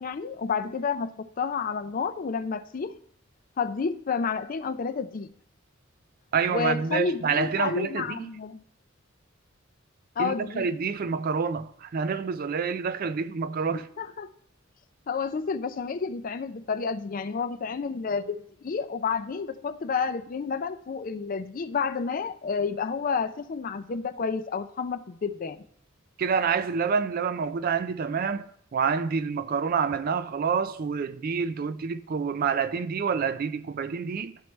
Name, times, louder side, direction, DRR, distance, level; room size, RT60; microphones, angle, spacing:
voice 1, 0.0-3.0 3.6-5.3 6.5-8.6 10.2-10.7 14.0-14.3 15.1-25.6, left 5 dB, 45° left, 0.4 m, -30 dB
voice 2, 6.3-8.3 10.2-13.9 26.2-34.4, right 6 dB, 45° right, 0.4 m, -28 dB
12.0 x 4.6 x 3.1 m
head